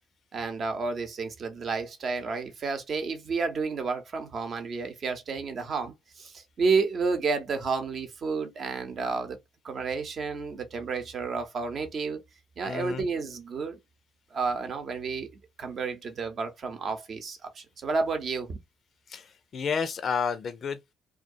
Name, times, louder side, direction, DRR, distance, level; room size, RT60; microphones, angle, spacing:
voice 1, 0.3-9.4 9.6-12.2 12.6-13.8 14.3-15.3 15.6-18.6, right 4 dB, 50° right, 0.7 m, -31 dB
voice 2, 12.6-13.0 19.1-20.9, left 6 dB, 50° left, 0.4 m, -31 dB
2.3 x 2.2 x 2.5 m
hypercardioid pair, 50°, 0 cm